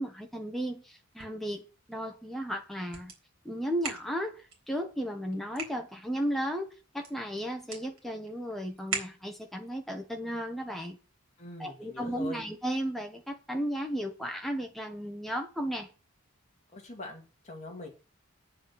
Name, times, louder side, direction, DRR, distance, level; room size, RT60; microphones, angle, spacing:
voice 1, 0.0-3.1 3.4-11.0 11.6-15.9, equal, ahead, 1.4 m, -34 dB
sound 1, 0.9-9.6, right 4 dB, 65° right, 4.0 m, -44 dB
voice 2, 11.4-12.4 16.7-17.9, left 2 dB, 30° left, 2.6 m, -42 dB
9.1 x 7.4 x 6.1 m
head